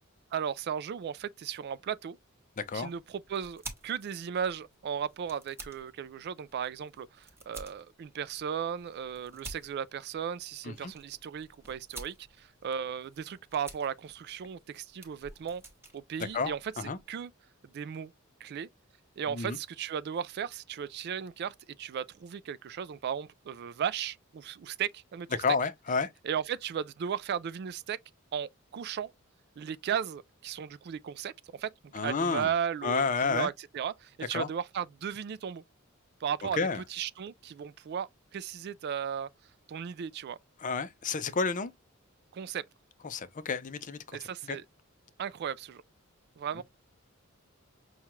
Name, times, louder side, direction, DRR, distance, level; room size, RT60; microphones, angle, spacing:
voice 1, 0.3-2.2 2.7-15.6 15.9-16.7 17.1-17.3 17.7-18.1 18.4-18.7 19.2-25.4 26.2-28.0 28.3-29.1 29.6-31.7 32.0-35.6 36.2-36.6 36.9-39.3 39.7-40.4 42.3-42.6 44.1-44.6 45.2-45.8 46.4-46.6, right 8 dB, 50° right, 0.3 m, -36 dB
sound 1, 2.5-17.1, right 2 dB, 10° right, 1.0 m, -51 dB
voice 2, 2.6-2.9 10.6-10.9 16.3-17.0 19.3-19.6 25.4-26.1 31.9-32.5 32.8-33.5 34.3-34.5 36.6-36.8 40.6-41.7 43.0-44.0 44.4-44.6 46.6-46.7, left 4 dB, 40° left, 0.5 m, -30 dB
5.6 x 2.3 x 3.0 m
head